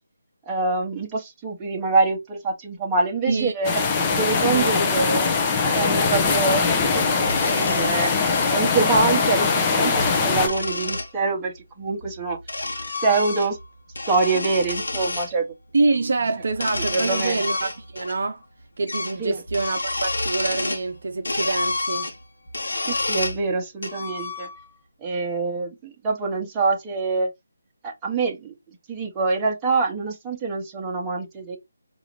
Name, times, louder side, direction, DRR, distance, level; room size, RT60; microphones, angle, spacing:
voice 1, 0.5-5.4 5.7-8.1 8.5-12.4 13.0-13.6 14.1-15.5 16.7-17.4 19.2-19.4 22.9-24.5 25.0-27.3 27.8-28.5 28.9-31.6, right 3 dB, 15° right, 1.1 m, -25 dB
sound 1, 3.6-10.5, left 4 dB, 20° left, 0.7 m, -21 dB
sound 2, 7.2-8.6 9.8-11.1 12.0-13.6 13.9-15.3 16.5-18.2 18.4-18.5 18.9-19.2 19.5-20.9 21.2-23.4 23.8-24.8, left 2 dB, 70° left, 0.9 m, -29 dB
voice 2, 15.7-18.4 18.8-22.1, right 3 dB, 60° right, 0.6 m, -25 dB
4.7 x 2.6 x 3.1 m
figure-of-eight pair, 155°, 0 cm